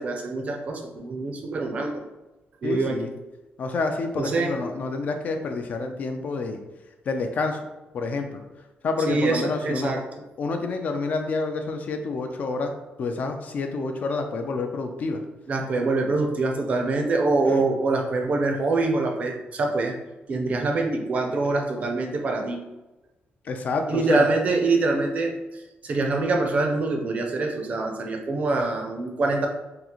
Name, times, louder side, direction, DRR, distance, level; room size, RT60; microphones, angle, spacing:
voice 1, 0.0-1.9 2.6-3.1 4.2-4.6 9.1-10.2 15.5-19.9 20.3-22.6 23.9-25.3 25.8-29.5, right 3 dB, 40° right, 3 dB, 0.4 m, -25 dB
voice 2, 2.6-3.1 3.6-6.6 7.1-7.6 7.9-8.4 8.8-9.9 10.4-12.7 13.0-15.2 17.5-17.6 23.5-24.3, left 3 dB, 45° left, 5 dB, 0.3 m, -28 dB
3.7 x 2.4 x 2.9 m, 1.0 s
cardioid pair, 170°, 4 cm